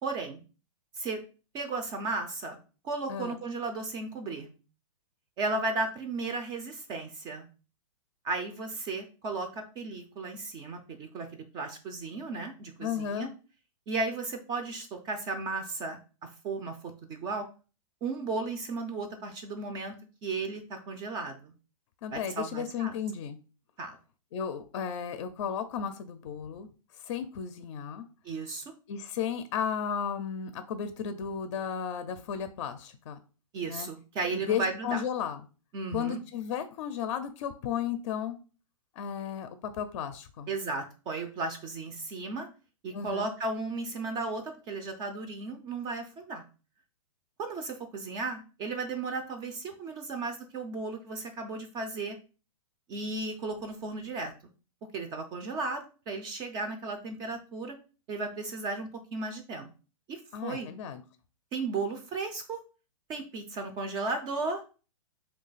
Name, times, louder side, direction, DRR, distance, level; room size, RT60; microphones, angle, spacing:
voice 1, 0.0-0.4 1.0-1.2 1.5-2.6 2.8-4.5 5.4-7.5 8.2-13.3 13.9-16.0 16.4-17.5 18.0-19.9 20.2-21.5 22.1-22.9 23.8-24.0 28.2-28.6 33.5-35.0 35.7-36.2 40.5-42.5 42.8-46.4 47.4-52.2 52.9-54.3 54.9-57.8 58.1-59.7 60.1-60.7 61.5-62.6 63.1-64.6, right 3 dB, 25° right, 6 dB, 0.4 m, -35 dB
voice 2, 12.8-13.3 22.0-23.4 24.3-26.7 27.0-28.1 28.9-33.2 33.7-33.9 34.3-35.4 35.9-38.4 39.0-39.5 39.8-40.5 42.9-43.3 60.3-61.0, left 8 dB, 55° left, 10 dB, 0.4 m, -34 dB
3.0 x 2.3 x 3.9 m, 0.35 s
hypercardioid pair, 130°, 18 cm